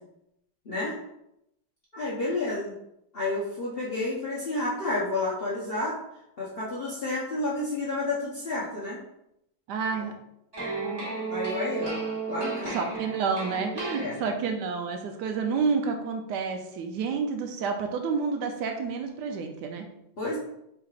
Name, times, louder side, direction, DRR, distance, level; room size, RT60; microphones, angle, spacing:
voice 1, 0.6-1.0 1.9-2.8 3.1-6.0 6.4-9.0 9.9-10.0 11.3-12.0 12.3-12.8 14.0-14.2 20.2-20.4, left 2 dB, 75° left, -7 dB, 0.5 m, -30 dB
voice 2, 9.7-10.1 12.7-19.8, right 5 dB, 75° right, 4 dB, 0.9 m, -29 dB
sound 1, 10.5-14.6, right 4 dB, 15° right, 1.0 m, -34 dB
4.5 x 3.8 x 2.4 m, 0.81 s
omnidirectional pair, 2.3 m